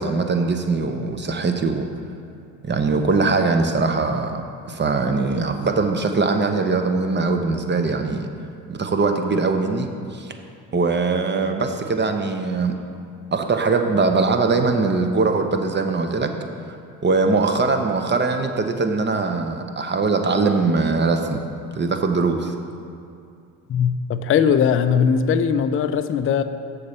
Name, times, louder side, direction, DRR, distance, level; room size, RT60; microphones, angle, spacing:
voice 1, 0.0-1.9 2.6-8.3 8.7-10.4 10.7-12.8 13.3-16.3 17.0-21.4 21.8-22.5, right 3 dB, 25° right, 6 dB, 0.7 m, -21 dB
voice 2, 23.7-26.4, left 7 dB, 35° left, 10 dB, 0.4 m, -19 dB
6.7 x 6.5 x 4.3 m, 2.5 s
supercardioid pair, 70°, 42 cm